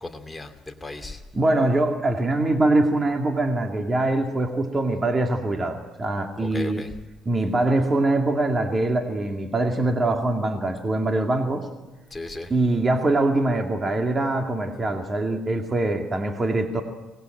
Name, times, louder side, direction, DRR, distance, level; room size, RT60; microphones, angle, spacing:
voice 1, 0.0-1.2 6.4-6.9 12.1-12.5, left 2 dB, 10° left, 5 dB, 2.5 m, -36 dB
voice 2, 1.3-6.8 7.3-11.7 12.5-16.8, right 2 dB, 25° right, 3 dB, 2.2 m, -23 dB
24.0 x 20.0 x 9.2 m, 1.1 s
cardioid pair, 115°, 0 cm